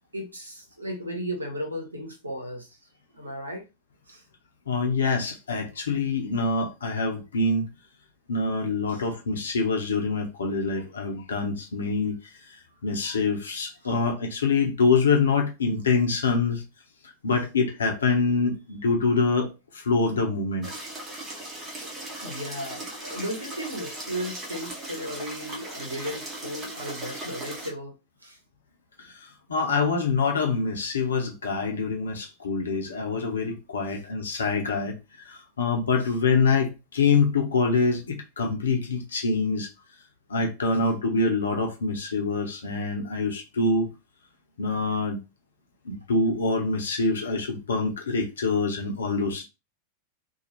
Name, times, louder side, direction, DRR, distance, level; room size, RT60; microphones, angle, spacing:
voice 1, 0.1-2.7 3.1-3.6 4.1-4.2 8.9-9.0 22.2-27.9 28.2-28.4, equal, 85° right, 0.8 m, -35 dB
voice 2, 4.7-7.7 8.3-12.2 12.8-16.6 17.2-19.5 19.9-20.7 29.5-34.9 35.6-39.7 40.3-43.9 44.6-45.2 45.9-49.4, left 4 dB, 70° left, 0.8 m, -25 dB
sound 1, 20.6-27.7, right 1 dB, 20° right, 1.0 m, -38 dB
2.7 x 2.3 x 3.0 m
figure-of-eight pair, 90°, 0 cm